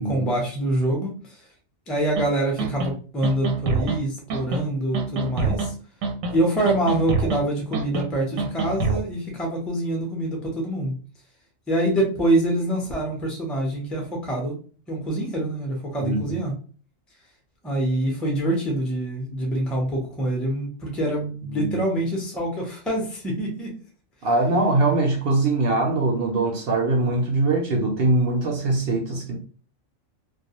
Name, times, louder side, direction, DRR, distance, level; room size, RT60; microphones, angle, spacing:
voice 1, 0.0-1.4 1.9-5.7 6.3-10.9 11.7-14.6 14.9-16.5 17.6-23.7, right 1 dB, ahead, 0.4 m, -25 dB
sound 1, 2.2-2.3 2.6-2.9 3.2-4.0 4.3-4.6 4.9-5.7 6.0-6.4 6.7-7.4 7.7-8.1 8.4-9.0, right 4 dB, 90° right, 1.0 m, -25 dB
voice 2, 16.0-16.4 21.4-21.8 24.2-29.4, right 2 dB, 65° right, 0.6 m, -22 dB
2.3 x 2.3 x 2.8 m
omnidirectional pair, 1.4 m